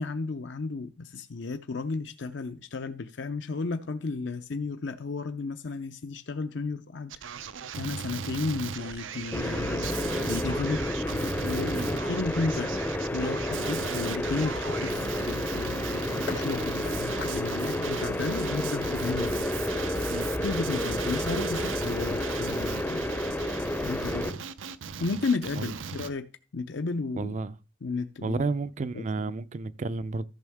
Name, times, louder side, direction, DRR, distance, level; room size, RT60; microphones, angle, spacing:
voice 1, 0.0-7.3 7.8-9.9 10.2-10.8 11.4-12.8 13.1-19.4 20.4-23.1 23.8-24.4 25.0-26.3 26.5-27.4 27.8-28.5 28.9-29.0, left 3 dB, 65° left, 0.6 m, -33 dB
Male speech man speaking, 7.1-26.1, right 7 dB, 90° right, 0.6 m, -38 dB
sound 1, 9.3-24.3, left 1 dB, 10° left, 0.5 m, -30 dB
sound 2, 16.3-22.1, left 3 dB, 85° left, 2.9 m, -45 dB
voice 2, 27.1-27.6 28.2-30.2, right 3 dB, 40° right, 0.4 m, -31 dB
14.0 x 6.2 x 3.5 m
head